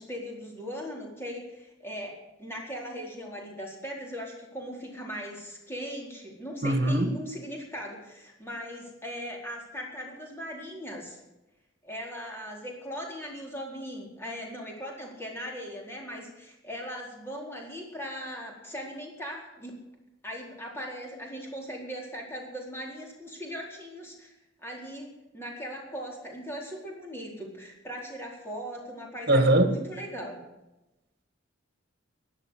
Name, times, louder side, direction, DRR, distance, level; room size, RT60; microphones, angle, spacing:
voice 1, 0.0-2.1 2.4-11.2 11.8-19.7 20.2-24.3 24.6-30.4, equal, 10° left, 4.3 m, -39 dB
voice 2, 6.6-7.1 29.3-29.7, right 1 dB, 50° right, 1.9 m, -21 dB
16.0 x 11.5 x 6.6 m
head